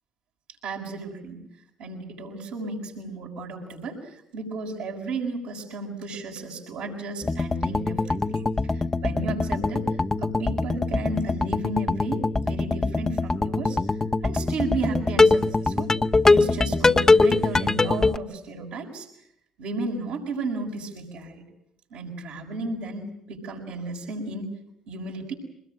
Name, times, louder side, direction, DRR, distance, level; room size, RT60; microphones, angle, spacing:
voice 1, 0.6-1.4 1.8-8.4 8.7-9.9 10.2-13.8 14.2-16.0 16.3-19.1 19.6-21.4 21.9-24.5 24.9-25.3, right 3 dB, 75° right, -1 dB, 6.7 m, -33 dB
sound 1, 7.2-18.2, left 3 dB, 25° left, 1.0 m, -22 dB
24.5 x 21.0 x 9.2 m, 0.73 s
hypercardioid pair, 60°, 2 cm